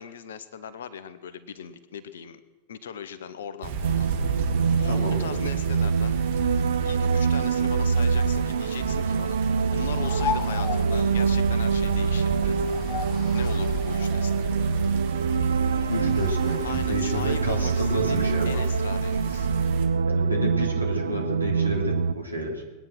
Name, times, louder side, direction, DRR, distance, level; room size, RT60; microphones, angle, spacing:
voice 1, 0.0-2.4 2.7-4.1 4.8-6.2 6.8-9.4 9.7-12.6 13.3-14.4 16.6-19.5, left 7 dB, 60° left, 13 dB, 1.1 m, -39 dB
sound 1, 3.6-19.9, right 5 dB, 55° right, 2.4 m, -33 dB
sound 2, 3.8-22.1, right 5 dB, 70° right, 0.4 m, -25 dB
voice 2, 4.8-5.4 15.9-18.6 20.1-22.6, equal, 85° right, 0 dB, 3.2 m, -30 dB
sound 3, 10.0-17.0, left 8 dB, 35° left, 0.6 m, -37 dB
21.5 x 9.3 x 6.1 m, 1.2 s
figure-of-eight pair, 90°, 0 cm